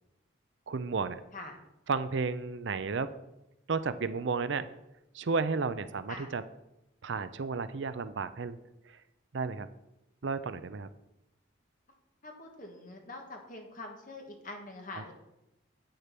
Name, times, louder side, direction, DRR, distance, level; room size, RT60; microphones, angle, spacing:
voice 1, 0.7-1.2 1.9-3.1 3.7-4.7 5.1-6.4 7.0-8.6 8.9-9.0 9.3-9.7 10.2-10.9, right 4 dB, 60° right, 13 dB, 0.5 m, -32 dB
voice 2, 12.2-15.1, left 2 dB, 40° left, 2 dB, 1.6 m, -44 dB
8.9 x 6.6 x 5.9 m, 0.90 s
head